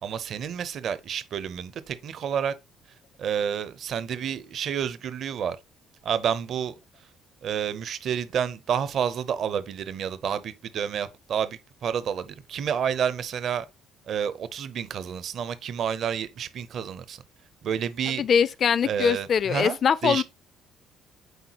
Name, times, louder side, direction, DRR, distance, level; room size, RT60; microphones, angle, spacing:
voice 1, 0.0-2.5 3.2-5.6 6.0-6.7 7.4-13.7 14.1-17.2 17.6-18.2 18.8-19.8 20.0-20.2, right 8 dB, 45° right, 0.6 m, -29 dB
voice 2, 18.2-20.2, left 7 dB, 35° left, 0.3 m, -22 dB
8.0 x 4.4 x 2.9 m
cardioid pair, 165°, 0 cm